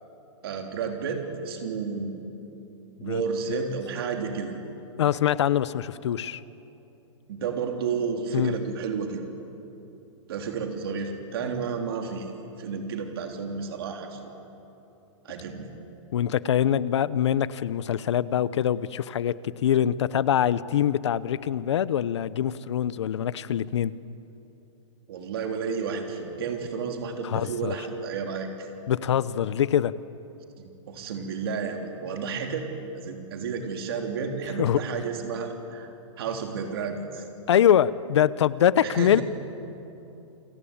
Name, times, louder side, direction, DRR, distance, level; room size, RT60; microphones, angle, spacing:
voice 1, 0.4-2.2 3.0-4.5 7.3-9.3 10.3-12.3 12.6-14.3 15.2-15.7 25.1-28.7 30.6-32.7 32.9-35.9 36.2-37.2 38.8-39.2, right 5 dB, 50° right, 3 dB, 3.4 m, -31 dB
voice 2, 5.0-6.4 8.3-8.5 16.1-23.9 27.2-27.8 28.9-29.9 34.6-34.8 37.5-39.2, left 10 dB, 60° left, 17 dB, 0.8 m, -24 dB
29.0 x 22.5 x 8.8 m, 2.9 s
hypercardioid pair, 175°, 16 cm